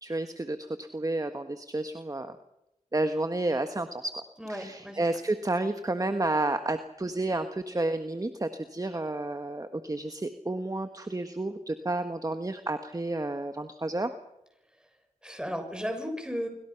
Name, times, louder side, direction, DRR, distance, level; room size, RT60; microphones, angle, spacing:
voice 1, 0.0-2.3 2.9-4.2 4.5-14.1, right 2 dB, 25° right, 8 dB, 1.5 m, -31 dB
voice 2, 4.4-5.0 15.2-16.5, equal, 5° right, 5 dB, 6.9 m, -34 dB
25.5 x 25.0 x 5.9 m, 0.85 s
cardioid pair, 50°, 13 cm